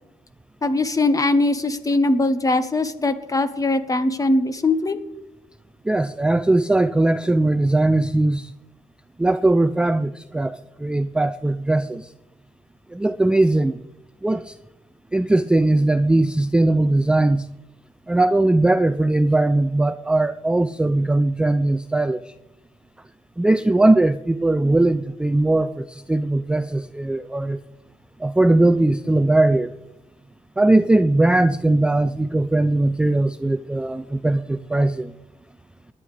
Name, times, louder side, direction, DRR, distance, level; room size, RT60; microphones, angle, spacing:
voice 1, 0.6-5.0, left 2 dB, 25° left, 1.0 m, -21 dB
voice 2, 5.9-8.5 9.2-10.6 10.8-12.0 12.9-13.8 14.2-14.5 15.1-17.5 18.1-22.2 23.4-27.6 28.2-29.7 30.6-35.1, right 2 dB, 5° right, 0.3 m, -19 dB
20.0 x 9.9 x 3.3 m
cardioid pair, 105°, 15 cm